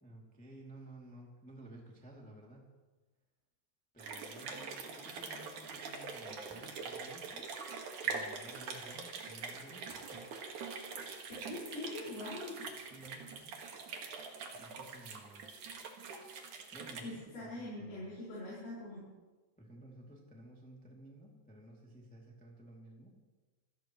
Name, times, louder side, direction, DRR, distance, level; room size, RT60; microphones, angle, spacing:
voice 1, 0.0-2.8 3.9-7.5 8.0-10.9 12.8-13.5 13.9-14.1 14.4-15.5 16.7-18.2 19.6-23.2, right 1 dB, 5° left, -2 dB, 1.7 m, -55 dB
sound 1, 4.0-17.0, right 5 dB, 55° right, 2.9 m, -44 dB
voice 2, 11.3-12.6 17.0-19.0, left 2 dB, 55° left, -8 dB, 6.9 m, -43 dB
27.5 x 16.0 x 3.2 m, 1.3 s
omnidirectional pair, 4.5 m